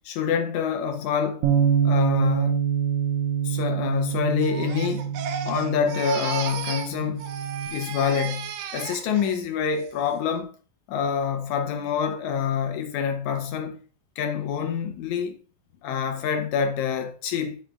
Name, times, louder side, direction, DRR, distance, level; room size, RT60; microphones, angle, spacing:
voice 1, 0.1-1.5 1.8-2.7 3.4-5.1 5.4-7.2 7.7-10.5 10.9-13.8 14.2-15.4 15.8-17.6, left 7 dB, 80° left, 1.7 m, -26 dB
Bass guitar, 1.4-7.7, right 8 dB, 65° right, 2.0 m, -26 dB
Crying sobbing, 4.4-6.9 7.2-9.4 9.8-10.2, right 8 dB, 90° right, 2.6 m, -34 dB
7.9 x 7.1 x 2.4 m
omnidirectional pair, 4.0 m